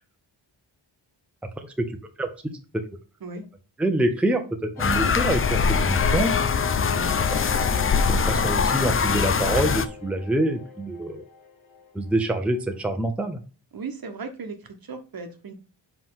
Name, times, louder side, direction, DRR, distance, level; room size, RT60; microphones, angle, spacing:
voice 1, 3.8-6.3 8.1-11.2 11.9-13.4, right 1 dB, 5° right, 4 dB, 0.7 m, -26 dB
sound 1, 4.8-12.2 12.5-12.6 12.9-13.0, left 8 dB, 85° left, 1.9 m, -36 dB
sound 2, 4.8-9.9, left 5 dB, 30° left, 0.4 m, -22 dB
voice 2, 13.7-14.6 14.9-15.5, right 4 dB, 50° right, 6 dB, 1.1 m, -36 dB
5.7 x 4.9 x 3.8 m, 0.35 s
wide cardioid pair, 125°, 46 cm